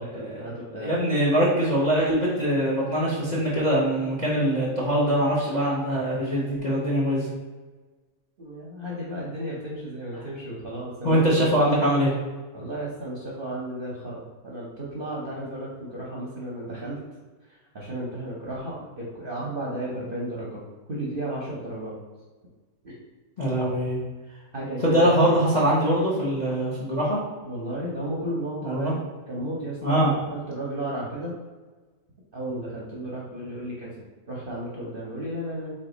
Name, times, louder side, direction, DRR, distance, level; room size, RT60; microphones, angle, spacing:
voice 1, 0.0-0.9 8.4-11.2 12.5-17.0 17.5-20.6 20.9-22.0 22.8-23.0 24.5-25.4 27.4-29.0 29.3-31.3 32.3-35.7, right 1 dB, 45° right, -5 dB, 0.8 m, -34 dB
voice 2, 0.8-7.3 11.0-12.2 23.4-24.0 24.8-27.2 28.6-28.9 29.8-30.1, equal, 35° left, -6 dB, 0.8 m, -23 dB
3.9 x 3.3 x 3.9 m, 1.3 s
omnidirectional pair, 1.8 m